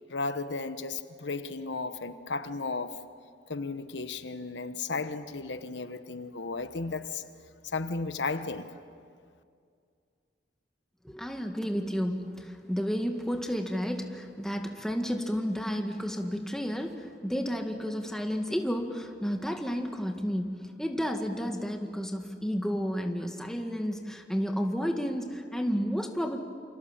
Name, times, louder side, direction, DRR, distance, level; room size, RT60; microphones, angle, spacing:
voice 1, 0.0-3.0 3.5-7.2 7.6-8.8, left 3 dB, 85° left, 1.1 m, -34 dB
voice 2, 11.0-26.4, equal, 5° left, 1.9 m, -31 dB
28.5 x 26.5 x 7.3 m
head